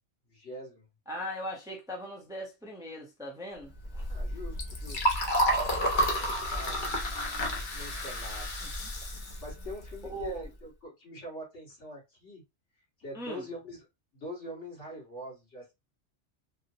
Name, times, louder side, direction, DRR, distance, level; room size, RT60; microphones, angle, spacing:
voice 1, 0.3-0.9 4.1-5.2 6.0-6.9 7.7-8.5 9.1-12.4 13.0-13.9 14.1-15.7, equal, 75° left, 2.1 m, -43 dB
voice 2, 1.1-4.1 10.1-10.4 13.1-13.4, equal, 5° right, 0.7 m, -39 dB
Liquid, 3.8-10.4, equal, 45° left, 0.9 m, -31 dB
3.7 x 2.1 x 2.8 m
omnidirectional pair, 1.2 m